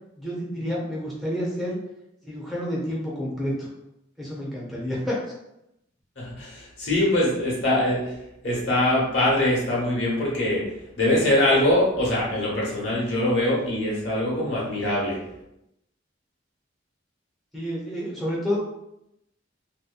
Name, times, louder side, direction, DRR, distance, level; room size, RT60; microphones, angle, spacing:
voice 1, 0.2-1.8 2.2-3.7 4.2-5.3 17.5-18.6, equal, ahead, -6 dB, 0.7 m, -29 dB
voice 2, 6.2-8.1 8.4-10.6 11.0-15.2, left 1 dB, 65° left, -6 dB, 1.0 m, -23 dB
2.7 x 2.2 x 2.2 m, 0.84 s
head